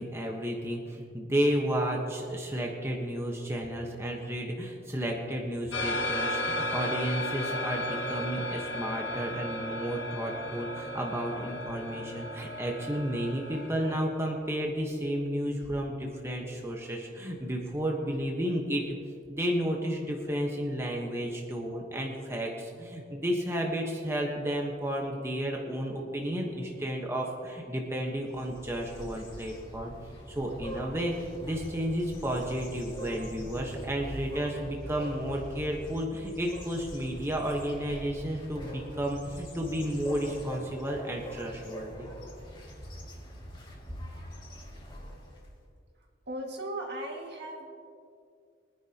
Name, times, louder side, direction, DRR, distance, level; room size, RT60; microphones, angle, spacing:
voice 1, 0.0-18.8 19.3-42.1, equal, 15° right, -1 dB, 1.2 m, -32 dB
sound 1, 5.7-14.0, left 1 dB, 80° left, 1.8 m, -34 dB
sound 2, 28.3-45.6, equal, 25° left, 2.3 m, -43 dB
voice 2, 46.3-47.7, right 1 dB, 60° right, 0 dB, 2.1 m, -37 dB
23.5 x 10.5 x 2.9 m, 2.4 s
head